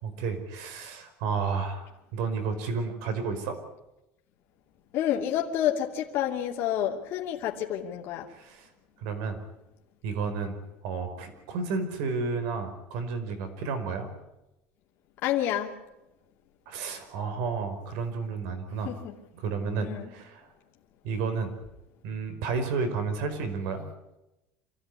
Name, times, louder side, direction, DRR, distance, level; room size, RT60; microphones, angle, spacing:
voice 1, 0.0-3.6 8.3-8.7 9.0-9.4 10.0-14.1 16.7-18.9 19.3-20.5 21.0-21.5 22.0-23.9, right 4 dB, 70° right, 8 dB, 5.1 m, -32 dB
voice 2, 4.9-8.3 15.2-15.7 18.8-19.2 19.8-20.1, left 11 dB, 45° left, -1 dB, 2.7 m, -29 dB
26.0 x 16.0 x 9.8 m, 0.95 s
cardioid pair, 165°, 5 cm